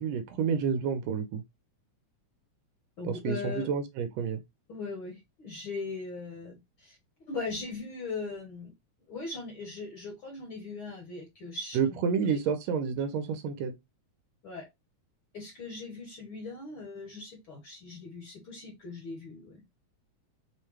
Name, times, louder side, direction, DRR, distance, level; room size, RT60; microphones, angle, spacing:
voice 1, 0.0-1.4 3.0-4.4 11.7-13.7, right 6 dB, 75° right, 1.7 m, -29 dB
voice 2, 3.0-3.7 4.7-7.0 7.3-8.7 9.1-12.0 14.4-14.7 15.3-19.6, left 3 dB, 60° left, 1.5 m, -39 dB
5.6 x 2.2 x 3.1 m
omnidirectional pair, 3.3 m